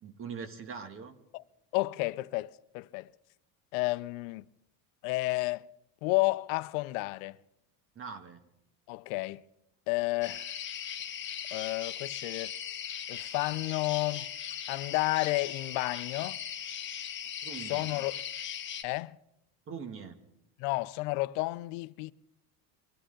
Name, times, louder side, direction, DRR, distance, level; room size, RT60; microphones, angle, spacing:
voice 1, 0.0-1.1 7.9-8.5 17.4-17.9 19.7-20.2, right 6 dB, 30° right, 1.4 m, -42 dB
voice 2, 1.7-3.1 3.7-4.4 5.0-5.7 6.0-7.4 8.9-9.4 9.9-10.6 11.5-12.5 13.1-14.3 14.7-16.4 17.7-18.3 18.8-19.2 20.6-22.1, left 21 dB, 80° left, 0.6 m, -31 dB
sound 1, 10.2-18.8, left 9 dB, 30° left, 1.2 m, -39 dB
22.5 x 15.0 x 3.7 m
cardioid pair, 145°, 40 cm